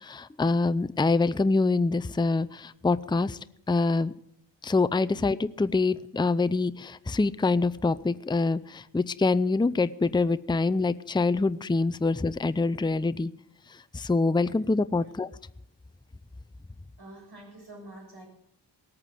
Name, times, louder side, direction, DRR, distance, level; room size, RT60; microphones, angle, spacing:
voice 1, 0.0-3.4 3.7-4.1 4.6-13.3 13.9-15.3, left 3 dB, 10° left, 14 dB, 0.5 m, -25 dB
voice 2, 17.0-18.2, right 1 dB, 60° right, 0 dB, 7.3 m, -47 dB
18.5 x 8.8 x 7.6 m, 0.73 s
cardioid pair, 55°, 43 cm